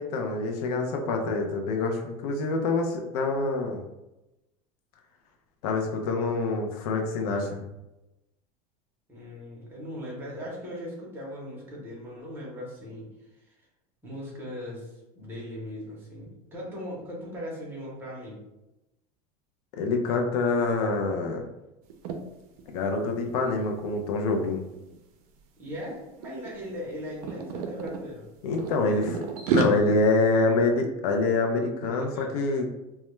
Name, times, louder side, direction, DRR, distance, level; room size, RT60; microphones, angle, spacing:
voice 1, 0.0-3.8 5.6-7.6 19.8-21.5 22.7-24.6 28.4-32.7, left 3 dB, 85° left, 3 dB, 0.5 m, -26 dB
voice 2, 9.1-13.1 13.4-13.5 14.0-18.4 25.6-28.3 31.8-32.4, equal, 10° right, -4 dB, 0.7 m, -39 dB
sound 1, 21.9-22.2 22.6-22.8 23.1-25.0 25.7-25.9 26.2-28.0 28.5-29.6, right 6 dB, 85° right, 0.4 m, -30 dB
2.2 x 2.1 x 3.0 m, 0.96 s
supercardioid pair, 155°, 19 cm